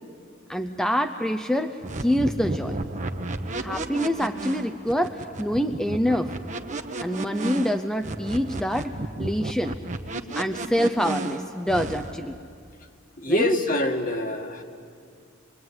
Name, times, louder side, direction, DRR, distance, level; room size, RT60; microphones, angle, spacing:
voice 1, 0.5-2.8 3.6-6.3 7.0-8.9 9.2-9.8 10.3-12.4 13.3-13.6, equal, 5° left, 6 dB, 0.6 m, -26 dB
sound 1, 1.8-12.2, right 2 dB, 35° right, 1.2 m, -32 dB
voice 2, 13.2-14.6, left 1 dB, 40° left, 4 dB, 1.9 m, -25 dB
25.0 x 23.0 x 9.6 m, 2.2 s
head